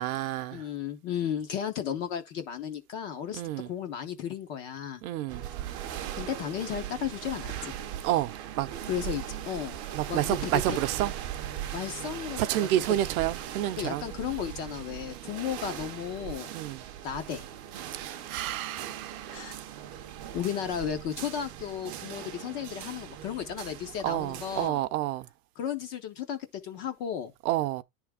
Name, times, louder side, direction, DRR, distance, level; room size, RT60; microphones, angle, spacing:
voice 1, 0.0-0.6 3.3-3.7 5.0-5.4 8.0-8.7 9.9-11.1 12.4-14.1 16.5-16.8 17.9-19.4 24.0-25.3 27.4-27.8, right 14 dB, 60° right, 0.8 m, -29 dB
voice 2, 0.5-5.0 6.2-7.7 8.9-9.8 10.1-10.8 11.7-12.7 13.8-16.5 17.0-17.5 19.3-19.5 20.3-24.8 25.6-27.3, left 9 dB, 25° left, 0.4 m, -34 dB
sound 1, 5.3-24.7, right 11 dB, 30° right, 0.6 m, -39 dB
10.0 x 3.5 x 4.8 m
supercardioid pair, 160°, 47 cm